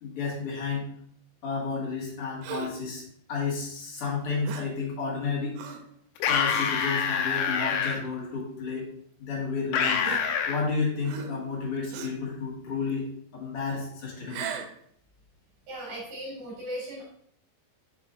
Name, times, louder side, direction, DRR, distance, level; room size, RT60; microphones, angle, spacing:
voice 1, 0.0-0.9 1.4-3.0 3.3-5.6 6.3-8.9 9.2-10.0 10.5-13.1 13.3-14.5, left 4 dB, 40° left, -5 dB, 2.3 m, -31 dB
Gasp, 2.4-2.9 4.4-4.8 5.6-5.9 6.5-6.8 7.5-7.6 8.7-8.8 10.0-10.7 11.0-11.5 11.9-12.3 14.2-14.8, right 9 dB, 85° right, 2.7 m, -39 dB
sound 1, 6.2-8.0 9.7-10.6, left 7 dB, 85° left, 2.9 m, -26 dB
voice 2, 15.7-17.0, equal, 50° right, -7 dB, 3.1 m, -37 dB
7.3 x 6.6 x 2.6 m, 0.65 s
omnidirectional pair, 5.0 m